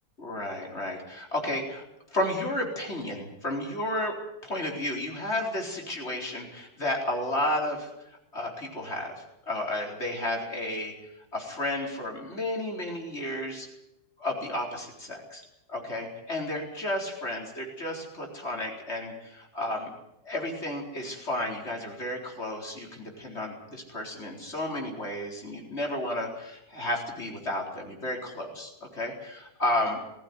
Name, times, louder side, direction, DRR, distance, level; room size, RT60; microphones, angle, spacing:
voice 1, 0.2-4.2 4.4-10.9 11.3-13.7 14.2-15.4 15.7-19.9 20.2-30.0, left 1 dB, 40° left, 1 dB, 4.6 m, -32 dB
19.5 x 15.5 x 9.7 m, 0.87 s
omnidirectional pair, 1.7 m